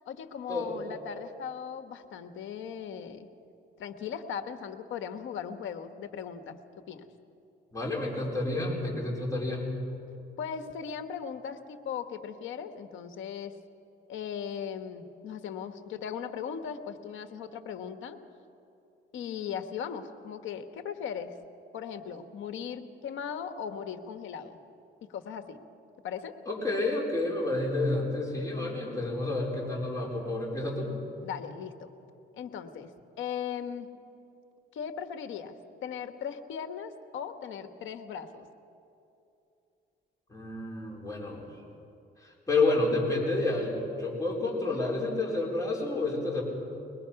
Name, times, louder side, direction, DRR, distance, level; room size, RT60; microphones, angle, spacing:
voice 1, 0.0-3.3 3.8-6.6 6.9-7.1 10.4-13.5 14.1-18.2 19.1-21.3 21.7-24.6 25.0-25.6 26.0-26.3 31.2-31.9 32.4-32.9 33.2-33.9 34.7-35.6 35.8-38.4 44.4-44.8, left 7 dB, 80° left, 9 dB, 1.3 m, -38 dB
voice 2, 7.7-9.7 26.5-30.9 40.3-41.4 42.2-46.4, left 2 dB, 15° left, -3 dB, 4.5 m, -30 dB
22.5 x 20.0 x 5.8 m, 2.8 s
cardioid pair, 90°, 20 cm